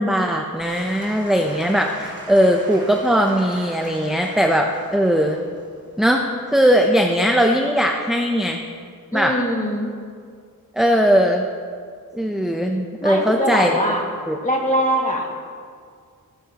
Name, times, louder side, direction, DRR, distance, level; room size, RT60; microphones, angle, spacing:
voice 1, 0.0-5.4 6.0-8.6 9.1-9.4 10.8-11.5 12.2-13.7 14.3-14.4, equal, ahead, 2 dB, 0.7 m, -19 dB
Applause / Crowd, 0.6-6.9, right 1 dB, 30° right, 3.2 m, -40 dB
voice 2, 9.1-9.9 13.0-14.0 14.4-15.3, equal, 20° left, -1 dB, 2.0 m, -22 dB
15.0 x 12.5 x 3.0 m, 2.1 s
wide cardioid pair, 80°, 37 cm